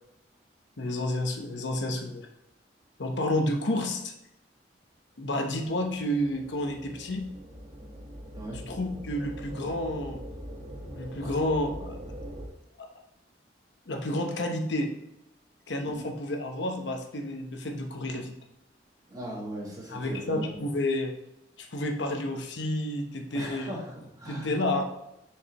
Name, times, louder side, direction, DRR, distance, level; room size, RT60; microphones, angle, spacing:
voice 1, 0.8-2.3 3.0-4.1 5.2-7.3 8.7-10.2 10.9-12.0 13.9-14.9 15.7-18.4 19.9-21.1 21.6-23.7 24.3-24.8, left 1 dB, 80° left, 3 dB, 0.9 m, -30 dB
sound 1, 5.6-12.5, equal, 45° right, 1.2 m, -42 dB
voice 2, 8.3-8.7 11.2-11.3 15.9-16.1 19.1-20.6 23.3-24.5, right 1 dB, 20° right, -4 dB, 1.7 m, -39 dB
6.7 x 4.8 x 3.0 m, 0.86 s
head